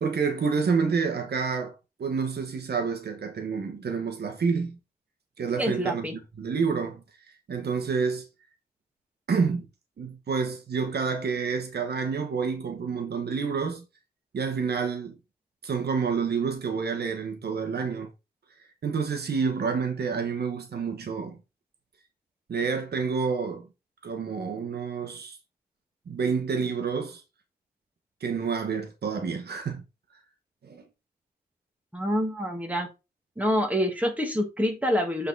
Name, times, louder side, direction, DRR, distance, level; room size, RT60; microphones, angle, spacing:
voice 1, 0.0-4.8 5.4-6.1 6.4-7.0 7.5-8.3 9.3-9.7 10.0-13.8 14.3-15.2 15.6-18.1 18.8-21.4 22.5-23.7 24.0-25.4 26.1-27.2 28.2-29.8 30.6-30.8, right 5 dB, 85° right, 1.3 m, -28 dB
voice 2, 5.6-6.2 31.9-32.9 33.4-35.3, equal, 10° right, 1.8 m, -26 dB
7.9 x 4.1 x 4.0 m
wide cardioid pair, 125°, 16 cm